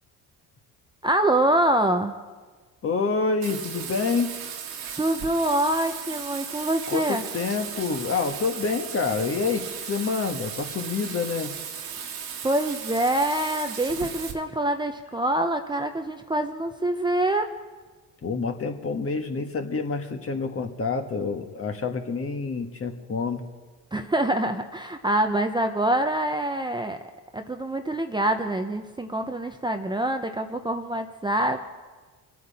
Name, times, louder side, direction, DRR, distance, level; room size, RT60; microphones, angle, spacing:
voice 1, 1.0-2.1 5.0-7.2 12.4-17.5 23.9-27.0 27.3-31.6, right 1 dB, 10° right, 6 dB, 0.7 m, -25 dB
voice 2, 2.8-4.3 6.9-11.5 18.2-23.4, left 4 dB, 40° left, 5 dB, 1.5 m, -27 dB
Bathtub (filling or washing), 3.4-14.3, right 7 dB, 90° right, 2.1 m, -36 dB
25.5 x 9.4 x 4.2 m, 1.4 s
cardioid pair, 95°, 37 cm